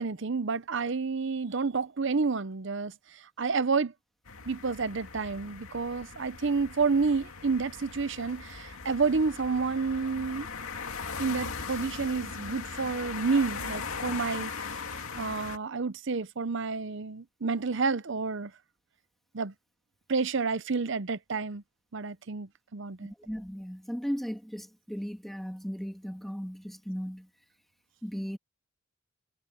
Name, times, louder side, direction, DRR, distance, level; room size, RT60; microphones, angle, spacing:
voice 1, 0.0-3.9 4.5-10.5 11.2-14.5 15.2-18.5 19.3-19.5 20.1-21.6 21.9-23.1, right 4 dB, 60° right, 0.7 m, -30 dB
sound 1, 4.3-15.6, left 5 dB, 90° left, 2.3 m, -39 dB
voice 2, 23.0-27.3 28.0-28.4, equal, ahead, 2.1 m, -36 dB
head